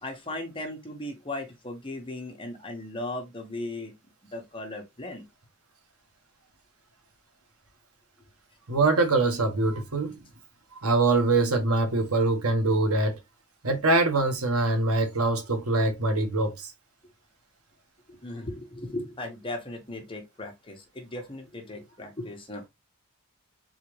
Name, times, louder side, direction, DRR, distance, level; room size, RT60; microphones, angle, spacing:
voice 1, 0.0-3.9 4.3-5.2 18.1-22.6, left 1 dB, 25° left, 1.3 m, -37 dB
voice 2, 8.7-10.2 10.8-13.2 13.6-16.7, right 2 dB, 80° right, 1.3 m, -24 dB
4.1 x 3.7 x 3.1 m
head